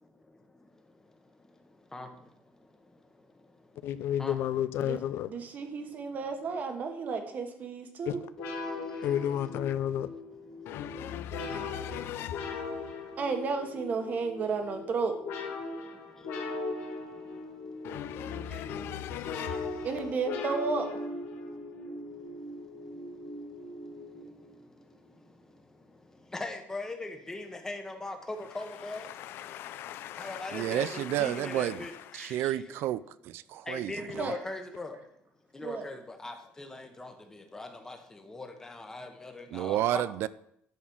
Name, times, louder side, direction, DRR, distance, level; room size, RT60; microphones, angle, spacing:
voice 1, 3.8-5.3 8.1-8.2 9.0-10.1 10.7-12.7 17.8-19.8 29.1-31.6, left 10 dB, 60° left, 0.6 m, -34 dB
voice 2, 5.3-8.2 13.2-15.2 19.8-20.9 34.0-34.4 35.6-35.9, right 4 dB, 40° right, 1.3 m, -32 dB
sound 1, 8.4-24.6, left 2 dB, 85° left, 2.7 m, -39 dB
voice 3, 26.3-29.1 30.2-32.9 33.7-35.0 35.5-40.0, left 2 dB, 10° left, 1.2 m, -40 dB
voice 4, 30.5-31.8 32.1-34.3 39.5-40.3, right 13 dB, 65° right, 0.4 m, -31 dB
11.0 x 4.3 x 6.2 m
cardioid pair, 140°, 4 cm